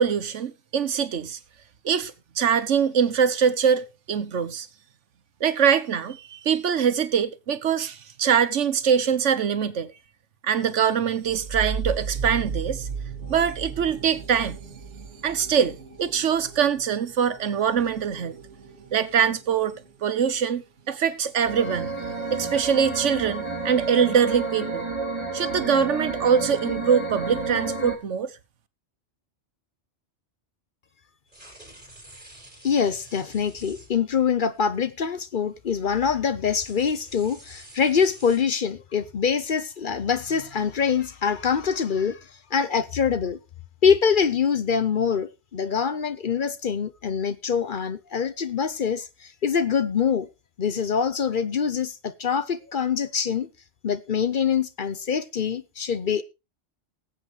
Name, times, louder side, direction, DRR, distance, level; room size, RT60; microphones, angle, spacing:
voice 1, 0.0-1.4 1.8-4.7 5.4-9.9 10.4-12.9 13.3-14.6 15.2-18.3 18.9-19.7 20.0-22.0 22.3-24.9 25.3-28.3, right 7 dB, 85° right, 1.3 m, -23 dB
sound 1, 11.2-20.6, right 5 dB, 65° right, 3.1 m, -36 dB
sound 2, 21.4-27.9, right 3 dB, 25° right, 3.4 m, -30 dB
sound 3, 31.3-34.2 34.6-34.8 35.7-36.1 36.5-38.4, right 1 dB, 40° right, 5.3 m, -49 dB
voice 2, 32.6-42.2 42.5-43.4 43.8-50.3 50.6-53.5 53.8-56.2, left 6 dB, 50° left, 0.8 m, -24 dB
19.5 x 8.1 x 3.2 m
omnidirectional pair, 1.2 m